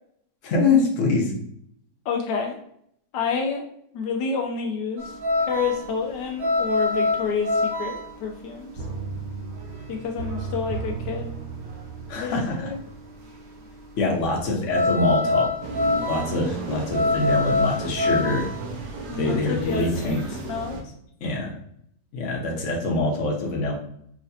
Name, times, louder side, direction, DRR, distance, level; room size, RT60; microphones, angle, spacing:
voice 1, 0.4-1.3 12.1-12.7 14.0-15.5 16.1-18.5 19.2-20.2 21.2-21.5 22.1-23.7, left 3 dB, 50° left, -1 dB, 1.2 m, -24 dB
voice 2, 2.0-2.6 3.1-3.6 3.9-8.7 9.9-11.3 12.2-12.8 19.1-20.8, left 5 dB, 80° left, 2 dB, 1.2 m, -29 dB
sound 1, 5.0-12.1 12.4-20.8, left 2 dB, 55° right, 0.8 m, -26 dB
sound 2, 8.8-13.4 13.8-13.9, right 4 dB, 20° right, 0.6 m, -35 dB
sound 3, 15.6-20.8, right 3 dB, 90° right, 1.5 m, -34 dB
4.8 x 3.1 x 2.7 m, 0.70 s
omnidirectional pair, 1.9 m